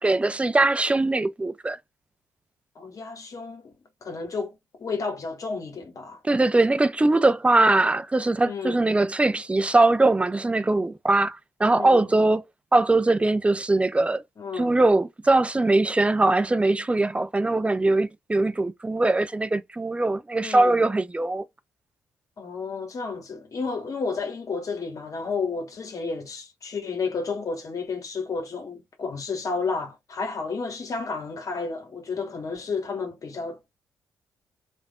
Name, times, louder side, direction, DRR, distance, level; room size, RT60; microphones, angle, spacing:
voice 1, 0.0-1.8 6.2-12.4 12.7-14.2 14.5-21.5, right 2 dB, 15° right, 0.4 m, -21 dB
voice 2, 2.7-3.7 4.0-6.2 8.4-8.9 11.7-12.1 14.4-14.8 20.4-20.8 22.4-33.7, left 4 dB, 45° left, 1.1 m, -32 dB
3.3 x 2.4 x 2.2 m
hypercardioid pair, 40°, 8 cm